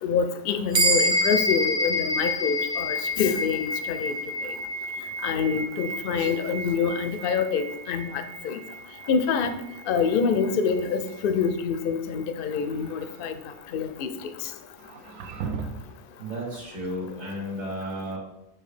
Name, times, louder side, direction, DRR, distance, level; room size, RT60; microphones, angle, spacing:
voice 1, 0.0-4.1 4.4-4.6 5.2-8.6 9.1-9.5 9.9-13.4 13.7-14.5, left 6 dB, 65° left, 9 dB, 0.5 m, -26 dB
sound 1, 0.7-10.5, left 1 dB, 40° right, 0.8 m, -29 dB
sound 2, 12.4-13.3 14.8-16.0, right 5 dB, 90° right, 1.1 m, -37 dB
voice 2, 16.2-18.2, equal, 65° right, -4 dB, 1.8 m, -33 dB
7.4 x 2.9 x 4.9 m, 0.90 s
omnidirectional pair, 1.5 m